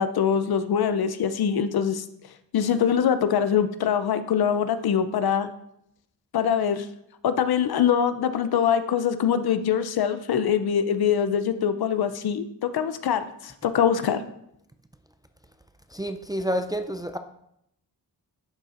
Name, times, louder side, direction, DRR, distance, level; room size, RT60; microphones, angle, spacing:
voice 1, 0.0-2.0 2.5-5.5 6.3-6.9 7.2-14.2, left 8 dB, 60° left, 11 dB, 0.6 m, -23 dB
voice 2, 15.9-17.2, equal, 10° right, 8 dB, 0.4 m, -29 dB
11.0 x 3.8 x 2.5 m, 0.77 s
supercardioid pair, 40°, 42 cm